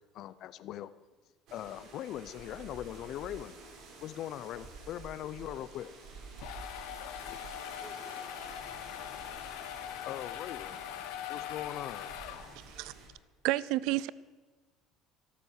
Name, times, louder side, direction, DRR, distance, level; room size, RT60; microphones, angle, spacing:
voice 1, 0.1-0.9 1.5-3.5 4.0-5.9 7.0-7.5 9.1-9.2 9.6-9.7 10.1-10.8 11.3-12.1, left 12 dB, 55° left, 0.6 m, -41 dB
sound 1, 1.5-13.1, right 4 dB, 60° right, 4.1 m, -50 dB
sound 2, 6.1-12.8, left 11 dB, 80° left, 1.0 m, -42 dB
voice 2, 7.8-10.3, right 1 dB, 10° right, 5.7 m, -57 dB
voice 3, 13.4-14.1, right 17 dB, 75° right, 0.5 m, -30 dB
13.5 x 13.0 x 6.5 m
cardioid pair, 145°, 0 cm